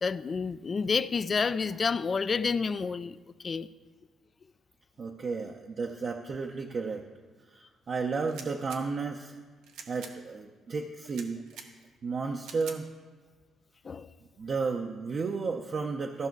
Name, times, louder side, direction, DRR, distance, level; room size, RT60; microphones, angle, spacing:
voice 1, 0.0-3.2 3.4-3.7 13.8-14.1, left 5 dB, 40° left, 0.3 m, -29 dB
voice 2, 5.0-7.0 7.5-9.3 9.9-11.4 12.0-12.9 14.4-16.3, right 4 dB, 45° right, 0.6 m, -33 dB
sound 1, 8.2-8.8 9.6-10.1 11.0-11.7 12.4-12.8, right 6 dB, 85° right, 0.9 m, -45 dB
14.0 x 5.6 x 4.6 m
cardioid pair, 90°, 0 cm